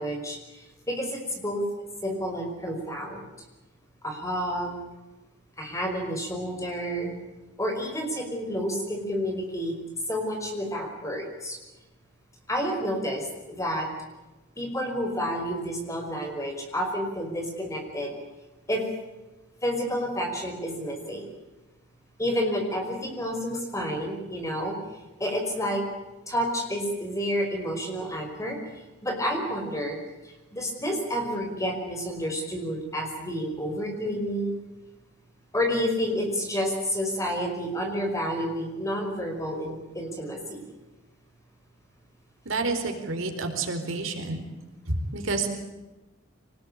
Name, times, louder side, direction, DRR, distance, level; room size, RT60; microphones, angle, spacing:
voice 1, 0.0-1.6 2.0-3.2 4.0-4.8 5.6-7.2 7.6-9.8 10.1-11.6 12.5-13.9 14.6-18.1 18.7-18.8 19.6-21.3 22.2-24.8 25.2-25.8 26.3-28.6 29.0-30.0 30.2-34.5 35.5-40.6, equal, 15° left, 2 dB, 5.4 m, -30 dB
voice 2, 42.5-44.4 44.9-45.5, right 3 dB, 80° right, 4 dB, 4.4 m, -29 dB
25.5 x 19.5 x 8.8 m, 1.1 s
head